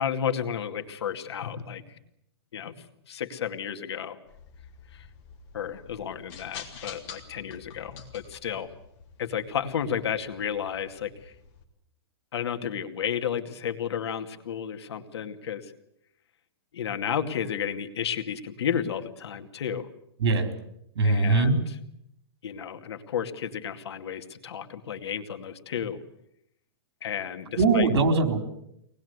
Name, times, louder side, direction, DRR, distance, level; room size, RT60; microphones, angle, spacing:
voice 1, 0.0-2.0 2.5-4.2 4.9-5.1 5.5-8.7 9.2-11.3 12.3-15.7 16.7-19.9 21.0-21.6 22.4-26.0 27.0-27.9, left 8 dB, 75° left, 7 dB, 2.4 m, -32 dB
sound 1, 4.3-11.6, left 6 dB, 30° left, 3.2 m, -48 dB
voice 2, 20.2-20.5 20.9-21.6 27.6-28.4, right 3 dB, 70° right, 6 dB, 4.2 m, -21 dB
24.0 x 20.0 x 8.1 m, 0.78 s
hypercardioid pair, 165°, 14 cm